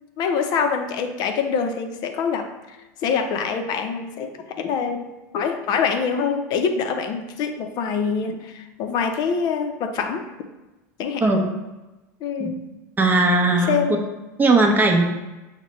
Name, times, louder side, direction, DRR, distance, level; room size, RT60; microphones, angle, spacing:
voice 1, 0.2-2.5 3.0-4.3 4.6-5.0 5.3-10.2 11.0-11.3 12.2-12.6 13.7-14.0, left 6 dB, 45° left, 6 dB, 0.6 m, -24 dB
voice 2, 13.0-13.8 14.4-15.0, right 2 dB, 20° right, 2 dB, 0.8 m, -17 dB
6.3 x 2.2 x 3.1 m, 1.1 s
hypercardioid pair, 95°, 10 cm